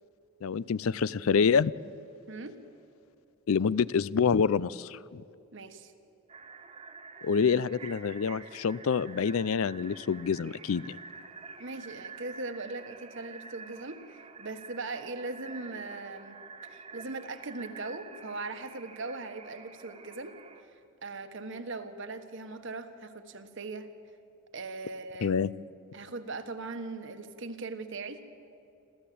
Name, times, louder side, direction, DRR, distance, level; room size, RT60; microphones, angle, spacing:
voice 1, 0.4-1.7 3.5-5.2 7.2-11.0 25.2-25.5, left 6 dB, 75° left, 20 dB, 0.4 m, -27 dB
voice 2, 2.3-2.6 5.5-5.9 11.6-16.4 16.6-20.3 21.0-23.9 24.5-25.5 25.9-28.2, right 3 dB, 60° right, 8 dB, 1.4 m, -39 dB
sound 1, 6.3-20.6, right 5 dB, 30° right, 1.4 m, -48 dB
27.0 x 14.5 x 8.5 m, 2.7 s
head